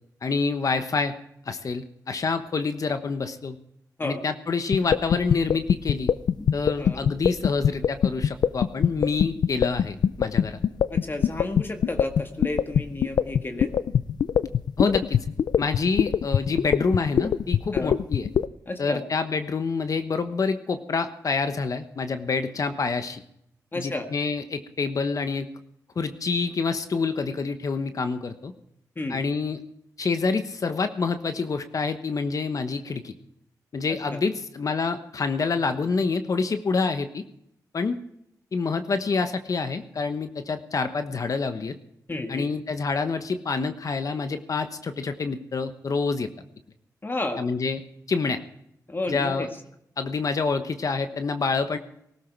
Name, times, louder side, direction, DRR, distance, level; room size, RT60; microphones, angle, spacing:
voice 1, 0.2-1.1 1.4-3.6 4.0-6.1 6.5-10.6 14.8-15.2 15.6-18.3 18.8-23.2 23.7-25.5 26.0-28.5 29.1-29.6 30.0-33.1 33.7-37.2 37.7-38.0 38.5-41.8 42.3-46.3 47.4-47.8 48.1-48.4 49.1-49.5 50.0-51.8, left 4 dB, 55° left, 9 dB, 1.2 m, -27 dB
sound 1, 4.7-18.5, left 8 dB, 85° left, 0.5 m, -22 dB
voice 2, 6.8-7.1 10.9-13.7 17.7-18.0 18.7-19.0 23.7-24.1 29.0-29.2 34.1-34.2 42.1-42.5 47.0-47.4 48.9-49.5, left 2 dB, 30° left, 5 dB, 1.8 m, -31 dB
19.5 x 13.0 x 4.6 m, 0.75 s
cardioid pair, 75°, 7 cm